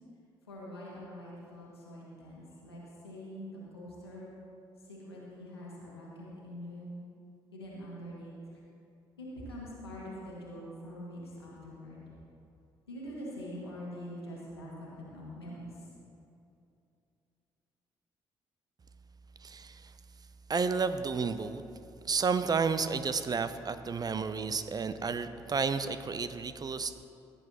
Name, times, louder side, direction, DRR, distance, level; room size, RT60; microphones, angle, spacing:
voice 1, 0.5-4.3 4.9-7.0 7.5-8.3 9.2-12.0 12.9-15.7, equal, 90° left, -6 dB, 1.6 m, -44 dB
voice 2, 19.4-19.9 20.5-21.6 22.0-27.0, right 5 dB, 30° right, 12 dB, 0.5 m, -31 dB
16.5 x 8.8 x 2.9 m, 2.6 s
figure-of-eight pair, 45°, 13 cm